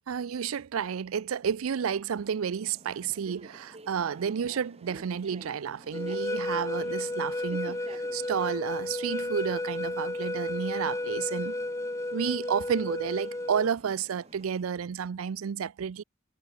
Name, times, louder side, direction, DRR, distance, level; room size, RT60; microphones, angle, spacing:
voice 1, 0.1-11.6 12.1-16.0, right 7 dB, 90° right, 0.4 m, -31 dB
sound 1, 2.1-14.5, right 2 dB, 30° right, 3.0 m, -52 dB
sound 2, 5.9-13.7, left 1 dB, 15° left, 0.7 m, -33 dB
head